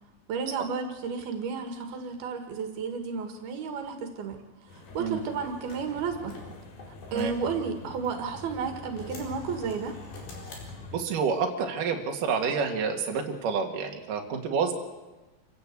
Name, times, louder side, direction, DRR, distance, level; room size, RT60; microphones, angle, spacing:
voice 1, 0.3-4.4 4.7-6.4 7.1-10.0, right 5 dB, 80° right, 6 dB, 3.8 m, -32 dB
sound 1, 4.7-11.0, left 3 dB, 60° left, 4.7 m, -45 dB
sound 2, 4.9-8.1 8.6-11.2, left 3 dB, 75° left, 6.3 m, -48 dB
voice 2, 10.9-14.7, right 5 dB, 65° right, 2 dB, 3.5 m, -28 dB
26.5 x 16.0 x 8.4 m, 1.1 s
omnidirectional pair, 4.3 m